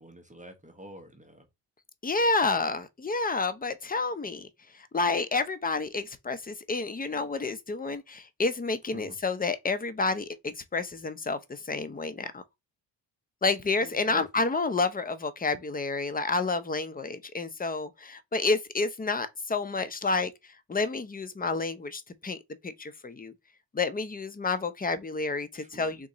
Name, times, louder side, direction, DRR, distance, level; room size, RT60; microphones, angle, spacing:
voice 1, 0.0-1.5 8.9-9.2 13.8-14.2 25.5-26.0, right 1 dB, 15° right, 0.9 m, -47 dB
voice 2, 2.0-4.5 4.7-12.4 13.4-20.3 20.7-22.4 22.6-23.3 23.7-26.1, left 3 dB, 20° left, 0.6 m, -29 dB
3.8 x 2.9 x 3.9 m
cardioid pair, 90°, 46 cm